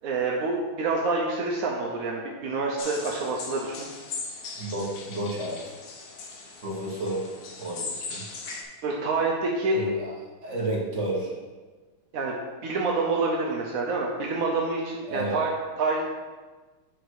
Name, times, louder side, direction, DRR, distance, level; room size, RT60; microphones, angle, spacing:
voice 1, 0.0-3.9 8.8-9.8 12.1-12.3 12.6-15.5 15.8-16.0, right 3 dB, 65° right, -2 dB, 0.8 m, -27 dB
sound 1, 2.8-8.6, left 4 dB, 75° left, 1.7 m, -39 dB
voice 2, 4.6-5.7 6.6-7.2 7.6-8.2 9.7-10.1 10.4-11.3 15.1-15.4, right 1 dB, 40° right, -3 dB, 1.5 m, -31 dB
7.9 x 3.9 x 4.8 m, 1.3 s
omnidirectional pair, 2.4 m